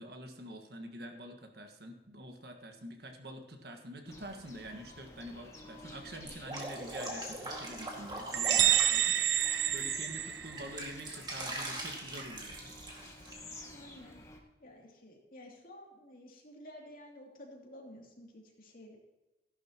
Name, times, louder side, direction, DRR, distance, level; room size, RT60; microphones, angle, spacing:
voice 1, 0.0-12.8, right 1 dB, 65° right, 5 dB, 1.6 m, -47 dB
sound 1, 4.1-14.4, left 2 dB, 15° left, 1.4 m, -50 dB
Drip, 6.2-9.8 10.2-13.3, right 2 dB, 25° right, 2.0 m, -42 dB
sound 2, 8.3-10.9, right 11 dB, 90° right, 0.6 m, -28 dB
voice 2, 13.7-14.2 14.6-19.0, left 1 dB, 50° left, -1 dB, 2.8 m, -52 dB
14.5 x 11.5 x 3.0 m, 1.1 s
head